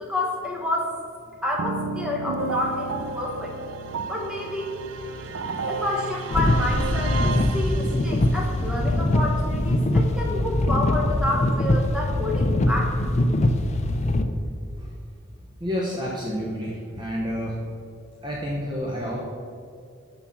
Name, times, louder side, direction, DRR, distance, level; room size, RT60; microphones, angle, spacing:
voice 1, 0.1-0.9 1.4-3.5 4.1-4.7 5.7-12.9, left 1 dB, 5° right, -3 dB, 1.2 m, -29 dB
sound 1, 1.6-8.4, right 4 dB, 60° right, 0.4 m, -32 dB
voice 2, 5.1-5.4 14.8-14.9 15.6-17.6 18.2-19.2, equal, 20° right, -3 dB, 0.7 m, -30 dB
sound 2, 6.3-14.2, left 1 dB, 30° left, 0.4 m, -22 dB
6.1 x 5.7 x 5.7 m, 2.3 s
head